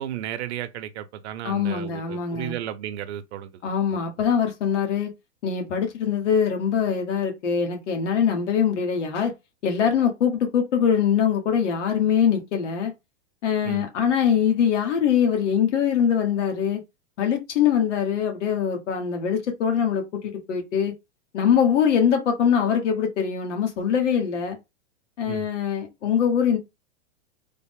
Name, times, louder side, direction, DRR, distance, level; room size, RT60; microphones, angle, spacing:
voice 1, 0.0-3.6 3.9-4.0 13.6-13.9 25.3-25.5, right 11 dB, 65° right, 0.7 m, -34 dB
voice 2, 1.4-2.6 3.6-5.1 5.4-9.3 9.6-12.9 13.4-16.8 17.2-20.9 21.3-24.6 25.2-26.6, left 8 dB, 85° left, 1.3 m, -23 dB
3.5 x 2.1 x 3.6 m
supercardioid pair, 150°, 35 cm